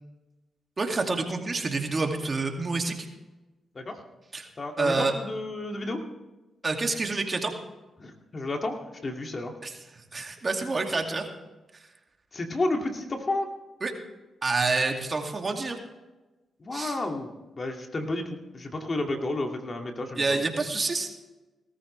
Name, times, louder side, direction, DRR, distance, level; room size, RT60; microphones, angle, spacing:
voice 1, 0.8-2.9 4.3-4.5 4.8-5.1 6.6-7.5 9.6-9.7 10.1-11.3 13.8-13.9 14.4-15.8 16.7-16.9 20.2-21.1, right 3 dB, 40° right, 3 dB, 2.3 m, -27 dB
voice 2, 4.6-6.0 8.0-9.5 12.3-13.5 16.6-20.4, left 2 dB, 40° left, 3 dB, 2.3 m, -31 dB
19.0 x 13.5 x 3.3 m, 1.1 s
supercardioid pair, 55°, 0 cm